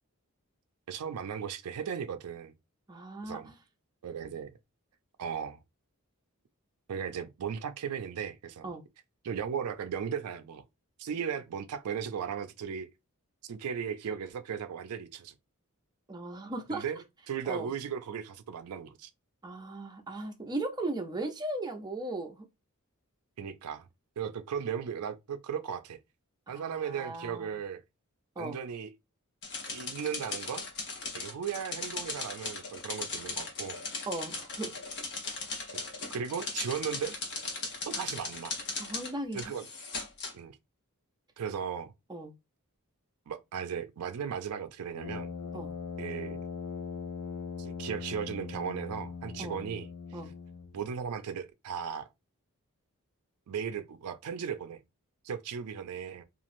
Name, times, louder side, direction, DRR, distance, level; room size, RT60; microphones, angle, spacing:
voice 1, 0.9-2.5 3.2-3.5 4.0-4.5 5.2-5.6 6.9-8.7 9.2-10.6 11.0-12.9 13.5-15.3 16.7-19.1 23.4-23.9 24.2-26.0 26.5-27.8 28.4-28.9 29.7-30.6 31.1-33.8 36.1-37.2 37.9-38.6 39.3-39.7 40.3-40.6 41.4-41.9 43.3-45.3 46.0-46.4 47.6-50.2 50.7-52.1 53.5-54.8 55.2-56.2, right 7 dB, 85° right, 0.4 m, -36 dB
voice 2, 2.9-3.5 8.6-8.8 16.1-16.8 17.4-17.7 19.4-22.5 26.5-27.5 28.4-28.6 34.1-34.7 38.8-39.5 42.1-42.3 45.5-45.7 49.4-49.6 50.1-50.3, right 2 dB, 20° right, 0.5 m, -37 dB
sound 1, 29.4-40.3, left 3 dB, 50° left, 0.9 m, -38 dB
Brass instrument, 44.9-50.8, left 5 dB, 85° left, 0.6 m, -40 dB
3.0 x 2.4 x 2.5 m
head